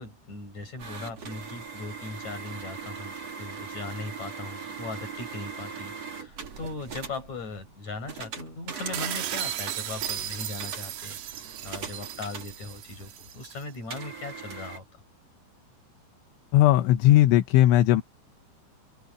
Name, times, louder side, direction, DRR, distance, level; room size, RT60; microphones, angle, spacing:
voice 1, 0.0-11.2 11.6-15.0, left 3 dB, 35° left, 9.0 m, -39 dB
sound 1, 0.8-13.1 13.9-14.8, right 5 dB, 40° right, 3.3 m, -40 dB
sound 2, 8.9-13.6, right 11 dB, 65° right, 3.2 m, -35 dB
voice 2, 16.5-18.0, left 14 dB, 75° left, 3.2 m, -18 dB
omnidirectional pair, 5.8 m